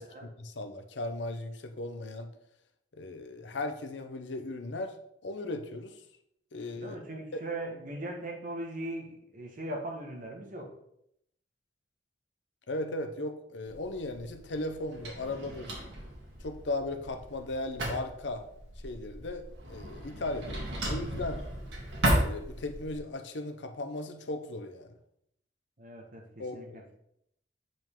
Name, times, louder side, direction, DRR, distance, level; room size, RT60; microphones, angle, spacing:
voice 1, 0.0-2.3 2.9-5.0 5.2-6.0 6.5-7.0 7.3-7.4 12.7-15.7 16.4-18.4 18.8-21.4 22.2-24.9 26.4-26.8, left 2 dB, 80° left, 6 dB, 0.8 m, -37 dB
voice 2, 6.7-10.7 25.8-26.8, right 1 dB, 45° right, 0 dB, 1.5 m, -39 dB
Drawer open or close, 13.6-23.0, right 1 dB, 85° right, 1.9 m, -35 dB
7.5 x 5.2 x 3.7 m, 0.75 s
head